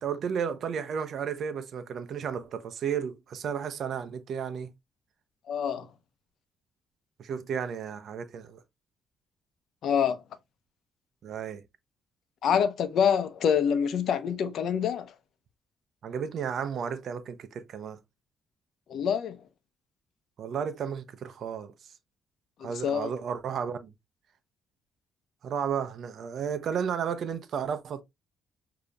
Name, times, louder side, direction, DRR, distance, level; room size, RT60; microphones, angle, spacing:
voice 1, 0.0-4.7 7.2-8.6 11.2-11.6 16.0-18.0 20.4-21.9 22.6-23.9 25.4-28.0, right 7 dB, 65° right, 0.7 m, -33 dB
voice 2, 5.5-5.9 9.8-10.2 12.4-15.1 18.9-19.4 22.6-23.1, left 7 dB, 70° left, 0.8 m, -26 dB
6.6 x 2.9 x 2.4 m
cardioid pair, 90°, 0 cm